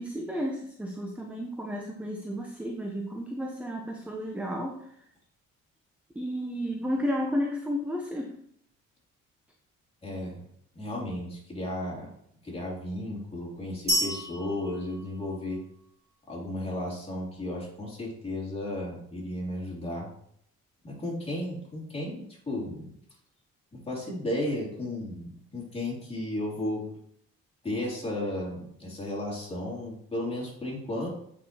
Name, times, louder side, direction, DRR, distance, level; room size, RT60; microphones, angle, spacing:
voice 1, 0.0-4.8 6.2-8.3, equal, 5° right, 0 dB, 0.7 m, -32 dB
voice 2, 10.0-10.4 10.7-12.1 12.4-15.6 16.3-20.1 20.8-22.9 23.7-26.9 27.6-31.1, left 1 dB, 20° left, -4 dB, 2.8 m, -34 dB
sound 1, 13.9-15.8, right 1 dB, 35° right, 2.7 m, -31 dB
8.1 x 4.5 x 2.9 m, 0.69 s
cardioid pair, 90°, 30 cm